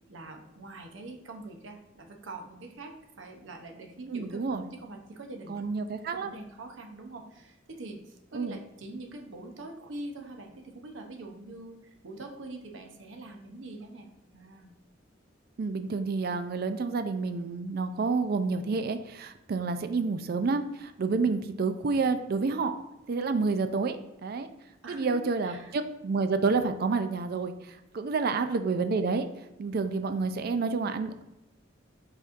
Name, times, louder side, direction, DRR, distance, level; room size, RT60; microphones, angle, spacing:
voice 1, 0.1-5.7 6.1-14.7 21.9-22.1 24.8-25.7 28.2-28.4 30.5-30.7, right 2 dB, 75° right, 3 dB, 0.7 m, -44 dB
voice 2, 4.1-4.6 5.5-6.3 8.3-8.6 15.6-22.8 23.1-24.0 24.2-24.5 24.9-29.3 29.6-31.1, right 4 dB, 50° right, 9 dB, 0.4 m, -29 dB
5.0 x 4.1 x 2.5 m, 0.94 s
head